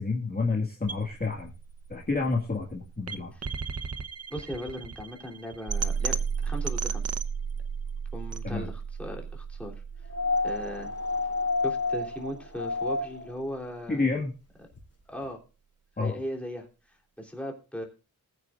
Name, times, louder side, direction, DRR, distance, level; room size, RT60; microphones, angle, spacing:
voice 1, 0.0-1.5 1.9-3.3 8.4-8.7 13.9-14.3 16.0-16.1, left 3 dB, 25° left, -1 dB, 1.9 m, -29 dB
sound 1, 0.9-12.9, right 6 dB, 45° right, 0.9 m, -34 dB
voice 2, 4.3-6.2 6.4-7.0 8.1-9.8 10.4-10.9 11.6-14.1 14.6-14.7 15.1-15.4 16.0-17.8, equal, 5° left, 0 dB, 3.4 m, -38 dB
sound 2, 10.1-13.4 14.8-14.9, left 3 dB, 45° left, 3.5 m, -29 dB
20.5 x 9.2 x 2.5 m, 0.32 s
wide cardioid pair, 135°, 34 cm